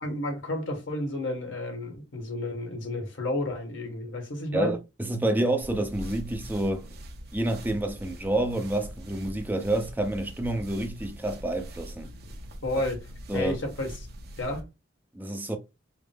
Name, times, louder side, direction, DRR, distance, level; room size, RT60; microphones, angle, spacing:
voice 1, 0.0-4.8 12.6-13.0 13.3-13.9 14.4-14.6, left 1 dB, 75° left, 1.4 m, -31 dB
voice 2, 4.5-6.9 7.3-12.1 13.3-13.6 15.1-15.6, right 1 dB, 10° right, 0.6 m, -28 dB
sound 1, 5.6-14.6, equal, 55° right, 0.8 m, -42 dB
5.0 x 2.1 x 3.5 m
head